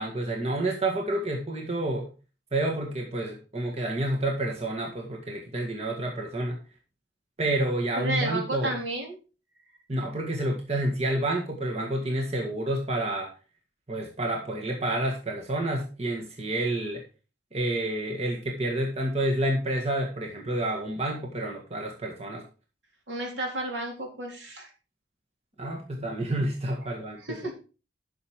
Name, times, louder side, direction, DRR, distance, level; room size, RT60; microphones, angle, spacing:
voice 1, 0.0-2.1 2.5-6.6 7.4-8.8 9.9-13.3 13.9-17.0 17.5-22.4 25.6-27.5, right 1 dB, 35° right, 0 dB, 1.8 m, -29 dB
voice 2, 8.0-9.2 23.1-24.7 27.2-27.5, right 1 dB, 75° right, 1 dB, 3.6 m, -32 dB
11.0 x 6.4 x 4.8 m, 0.34 s
head